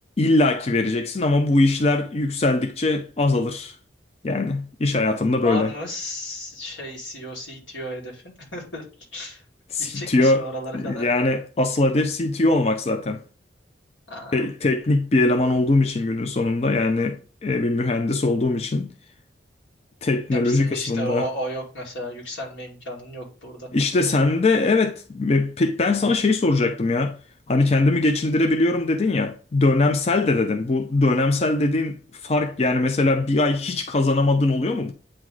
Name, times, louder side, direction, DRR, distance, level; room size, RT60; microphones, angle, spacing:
voice 1, 0.2-3.8 4.2-5.7 9.7-10.5 10.7-13.2 14.3-18.9 20.0-21.3 23.7-27.2 27.5-34.9, left 2 dB, 35° left, 0.4 m, -21 dB
voice 2, 5.4-8.9 9.1-9.4 9.8-11.1 14.1-14.4 20.3-23.7, equal, 85° left, 2.5 m, -33 dB
8.5 x 3.1 x 3.8 m
head